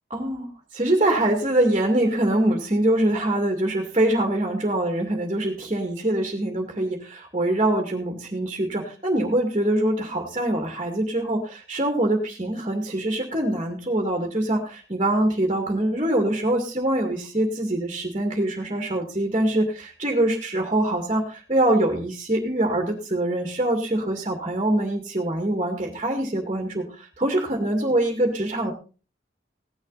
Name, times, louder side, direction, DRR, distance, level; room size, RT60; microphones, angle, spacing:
voice 1, 0.1-28.7, right 1 dB, 35° right, 3 dB, 2.2 m, -24 dB
17.0 x 10.5 x 4.1 m, 0.36 s
head